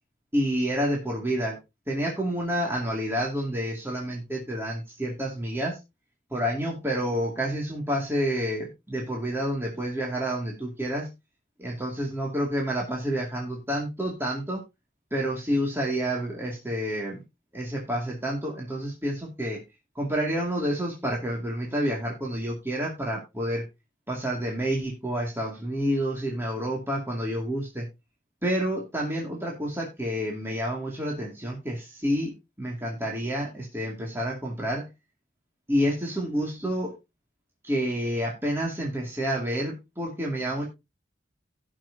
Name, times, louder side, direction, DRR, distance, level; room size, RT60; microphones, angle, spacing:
voice 1, 0.3-1.6 1.9-5.8 6.3-11.1 11.6-14.6 15.1-17.2 17.5-19.6 19.9-23.6 24.1-27.9 28.4-34.9 35.7-36.9 37.6-40.7, equal, 10° right, -3 dB, 2.4 m, -29 dB
17.5 x 6.2 x 2.8 m, 0.24 s
head